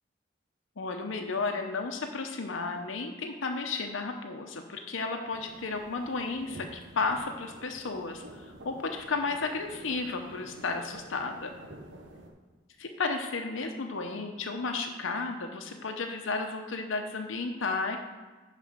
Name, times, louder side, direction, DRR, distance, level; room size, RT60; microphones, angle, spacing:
voice 1, 0.8-11.5 12.8-18.0, left 3 dB, 90° left, 4 dB, 0.7 m, -33 dB
sound 1, 5.3-12.3, right 1 dB, 75° right, 1.1 m, -49 dB
11.0 x 4.2 x 5.0 m, 1.3 s
head